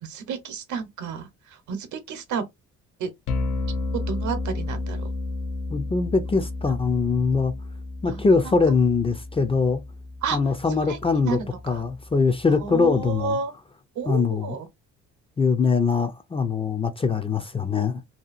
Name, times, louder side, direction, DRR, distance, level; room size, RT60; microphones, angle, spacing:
voice 1, 0.0-1.3 1.7-2.4 3.0-3.1 4.1-5.0 6.7-6.8 8.0-8.5 10.2-10.4 10.9-11.0 11.2-11.4 11.7-11.8 12.6-13.5 14.0-14.7, right 6 dB, 75° right, 0.8 m, -31 dB
sound 1, 3.3-13.3, left 2 dB, 90° left, 0.6 m, -33 dB
voice 2, 5.7-7.5 8.0-9.8 10.3-11.4 11.6-13.4 14.1-14.6 15.4-18.0, left 4 dB, 20° left, 0.4 m, -22 dB
2.7 x 2.3 x 2.4 m
cardioid pair, 90°, 30 cm